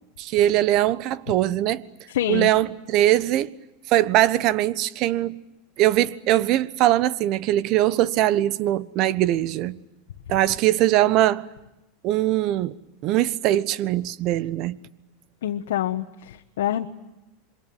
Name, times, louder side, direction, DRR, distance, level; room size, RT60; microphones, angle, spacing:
voice 1, 0.2-1.8 2.3-3.5 3.9-5.4 5.8-9.8 10.3-11.4 12.0-12.7 13.0-14.8, right 14 dB, 50° right, 1.2 m, -21 dB
voice 2, 2.1-2.5 15.4-16.9, left 12 dB, 85° left, 1.4 m, -26 dB
27.0 x 23.5 x 9.4 m
supercardioid pair, 130°, 0 cm